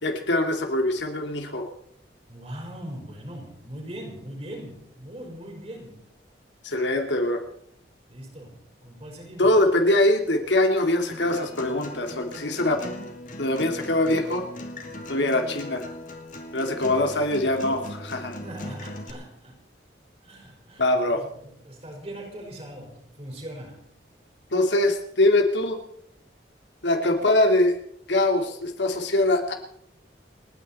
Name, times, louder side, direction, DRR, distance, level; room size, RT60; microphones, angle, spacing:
voice 1, 0.0-1.7 6.6-7.4 9.4-12.8 13.4-14.5 15.1-15.8 16.5-18.4 20.8-21.2 24.5-25.8 26.8-27.8 28.1-29.5, left 1 dB, 80° left, 2.6 m, -23 dB
voice 2, 2.3-6.0 8.1-9.5 18.4-19.6 20.2-20.8 21.2-23.8, right 1 dB, 35° right, 5.0 m, -40 dB
Acoustic guitar, 11.1-19.1, left 1 dB, 45° left, 2.7 m, -39 dB
29.5 x 9.9 x 4.3 m
head